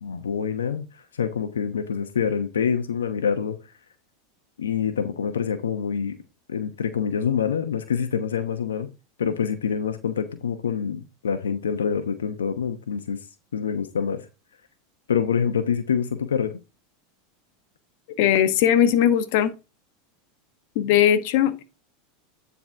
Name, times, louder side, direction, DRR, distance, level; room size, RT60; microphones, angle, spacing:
voice 1, 0.0-0.9 1.1-3.6 4.6-6.2 6.5-8.9 9.2-13.2 13.5-14.3 15.1-16.5, left 7 dB, 90° left, 0.9 m, -26 dB
voice 2, 18.2-19.5 20.7-21.6, left 10 dB, 65° left, 1.2 m, -19 dB
9.7 x 4.1 x 4.5 m
hypercardioid pair, 100°, 0 cm